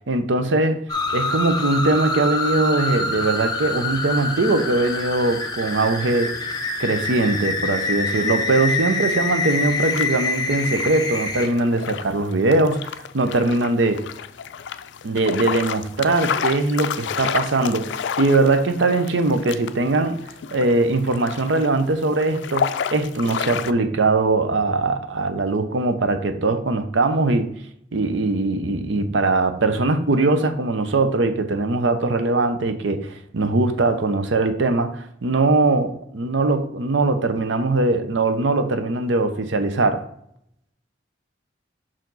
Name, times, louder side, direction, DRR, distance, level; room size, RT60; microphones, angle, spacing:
voice 1, 0.1-0.8 1.1-6.3 6.8-14.0 15.0-20.2 20.5-27.5 27.9-40.0, right 2 dB, 75° right, 0.6 m, -21 dB
sound 1, 0.9-11.5, left 2 dB, 20° left, 0.7 m, -26 dB
sound 2, 9.5-23.7, left 7 dB, 65° left, 0.4 m, -31 dB
5.9 x 4.7 x 3.9 m
head